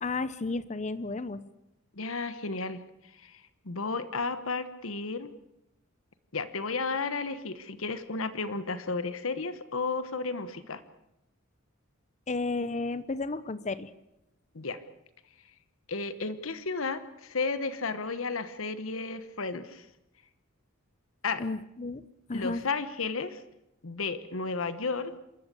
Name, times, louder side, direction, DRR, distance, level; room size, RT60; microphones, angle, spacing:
voice 1, 0.0-1.5 12.3-13.9 21.4-22.6, left 3 dB, 35° left, 16 dB, 0.7 m, -33 dB
voice 2, 2.0-2.8 3.2-5.3 6.3-10.8 14.5-14.8 15.9-19.8 21.2-21.4 22.3-23.4 23.8-25.1, left 4 dB, 75° left, 13 dB, 1.2 m, -33 dB
26.5 x 13.5 x 8.3 m, 0.87 s
head